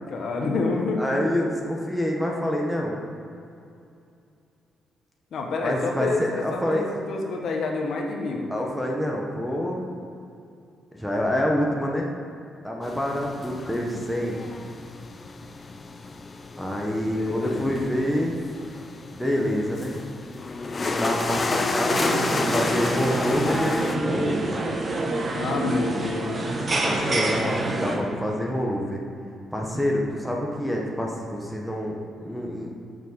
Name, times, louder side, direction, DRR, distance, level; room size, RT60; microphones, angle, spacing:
voice 1, 0.1-1.0 5.3-8.5 17.1-17.8 25.3-26.4, left 3 dB, 55° left, 1 dB, 1.2 m, -28 dB
voice 2, 1.0-3.0 5.6-6.8 8.5-9.9 10.9-12.1 12.6-14.4 16.6-18.4 19.1-20.0 20.8-24.5 26.8-29.0 29.5-32.7, equal, ahead, -2 dB, 0.9 m, -27 dB
sound 1, 12.8-24.0, left 3 dB, 25° left, 0.5 m, -31 dB
sound 2, 21.9-28.0, right 2 dB, 25° right, 0.9 m, -27 dB
6.9 x 6.0 x 6.5 m, 2.6 s
cardioid pair, 160°, 0 cm